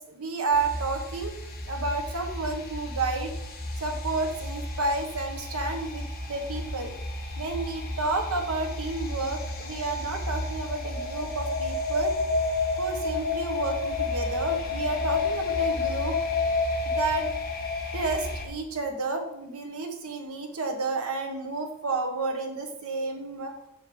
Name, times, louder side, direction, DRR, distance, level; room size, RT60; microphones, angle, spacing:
voice 1, 0.1-1.3 1.6-3.3 3.8-6.9 7.4-12.1 12.8-16.2 17.0-17.3 17.9-23.5, right 3 dB, 70° right, 4 dB, 1.3 m, -31 dB
sound 1, 0.5-18.5, left 3 dB, 40° left, 1.4 m, -31 dB
6.4 x 5.2 x 6.1 m, 0.83 s
head